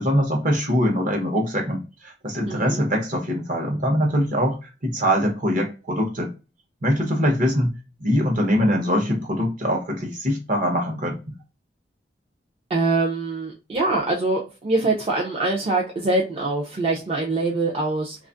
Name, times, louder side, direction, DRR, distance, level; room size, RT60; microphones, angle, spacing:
voice 1, 0.0-4.6 4.8-6.3 6.8-7.7 8.0-11.2, equal, 50° right, 0.9 m, -23 dB
voice 2, 2.5-2.9 12.7-18.2, right 2 dB, 35° right, 0.5 m, -24 dB
2.5 x 2.4 x 2.4 m
head